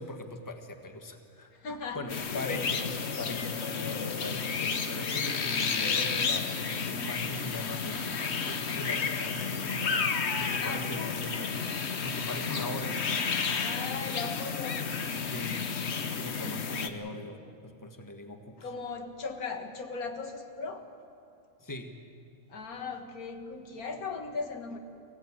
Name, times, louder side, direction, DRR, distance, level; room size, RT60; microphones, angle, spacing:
voice 1, 0.0-1.5 1.9-2.8 3.2-4.4 4.9-10.1 10.4-11.5 12.0-13.0 15.3-15.6 16.0-17.4 17.6-18.6 21.6-21.9, left 2 dB, 15° left, 5 dB, 1.4 m, -40 dB
voice 2, 1.5-2.7 3.5-4.0 10.6-11.4 13.6-14.8 18.6-20.9 22.5-24.8, left 4 dB, 85° left, 5 dB, 2.0 m, -38 dB
sound 1, 2.1-16.9, left 5 dB, 50° left, 1.3 m, -31 dB
23.5 x 16.5 x 8.7 m, 2.5 s
omnidirectional pair, 1.5 m